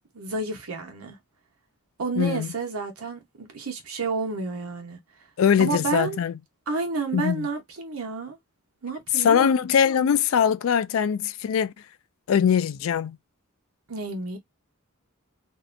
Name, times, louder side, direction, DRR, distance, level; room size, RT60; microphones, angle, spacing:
voice 1, 0.1-1.2 2.0-5.0 5.6-6.2 6.7-8.4 8.8-9.5 10.0-10.1 13.9-14.4, right 3 dB, 80° right, 0.9 m, -30 dB
voice 2, 2.2-2.5 5.4-6.3 7.1-7.5 9.2-11.7 12.3-13.2, left 7 dB, 70° left, 0.3 m, -22 dB
2.6 x 2.1 x 2.5 m
head